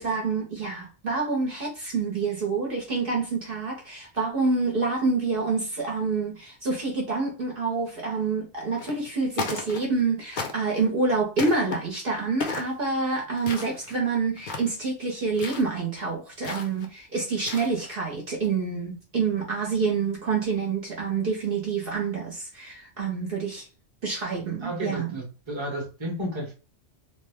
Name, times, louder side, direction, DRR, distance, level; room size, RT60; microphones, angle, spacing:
voice 1, 0.0-23.6 24.0-25.1, right 4 dB, 55° right, 1.0 m, -27 dB
sound 1, 8.7-9.1 9.3-10.0 10.4-10.9 11.4-11.8 12.4-12.8 13.4-14.0 14.4-14.8 15.3-15.7 16.4-16.9 17.3-18.0, left 4 dB, 50° left, 0.7 m, -35 dB
voice 2, 24.6-26.5, right 1 dB, 25° right, 1.0 m, -32 dB
3.0 x 2.1 x 3.4 m
omnidirectional pair, 1.2 m